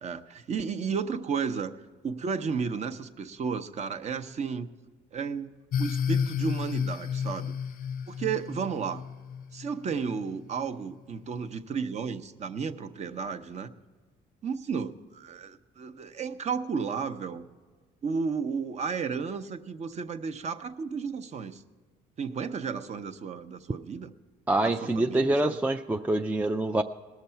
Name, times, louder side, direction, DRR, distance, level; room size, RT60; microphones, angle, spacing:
voice 1, 0.0-1.8 2.0-4.7 5.1-7.5 8.1-9.0 9.5-13.7 14.4-17.4 18.0-21.6 22.2-24.1 24.6-25.5, right 5 dB, 40° right, 8 dB, 0.7 m, -33 dB
sound 1, 5.7-10.3, left 7 dB, 55° left, 0.5 m, -32 dB
voice 2, 24.5-26.8, right 2 dB, 10° right, 5 dB, 0.4 m, -26 dB
19.0 x 6.7 x 5.7 m, 1.5 s
cardioid pair, 110°, 17 cm